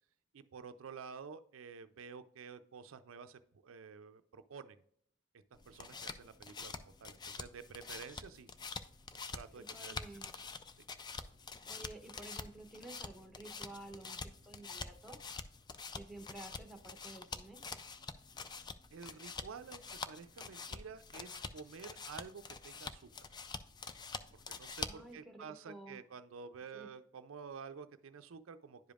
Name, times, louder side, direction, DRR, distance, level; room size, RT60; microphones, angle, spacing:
voice 1, 0.3-4.8 5.7-8.5 9.3-10.1 18.9-23.1 24.5-28.9, right 5 dB, 80° right, 11 dB, 0.4 m, -50 dB
sound 1, 5.5-25.1, left 4 dB, 20° left, 0.3 m, -46 dB
voice 2, 9.5-10.3 11.7-15.2 15.9-17.6 24.9-26.0 26.7-26.9, right 2 dB, ahead, 4 dB, 0.8 m, -52 dB
10.5 x 5.1 x 2.4 m, 0.66 s
head